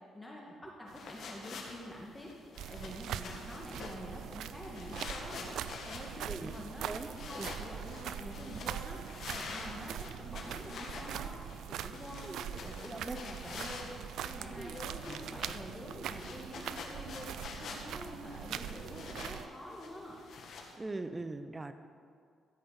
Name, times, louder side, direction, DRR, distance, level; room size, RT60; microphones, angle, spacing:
voice 1, 0.1-11.4 11.7-17.3 17.6-20.2, left 1 dB, 10° left, -3 dB, 1.8 m, -47 dB
sound 1, 0.9-20.7, left 4 dB, 65° left, 1.8 m, -48 dB
sound 2, 2.6-19.5, right 10 dB, 80° right, 0.4 m, -42 dB
voice 2, 12.2-12.5 12.9-13.2 14.5-14.8 15.0-15.4 20.7-21.7, right 2 dB, 20° right, 10 dB, 0.8 m, -41 dB
14.0 x 5.5 x 8.1 m, 2.2 s
cardioid pair, 90°, 0 cm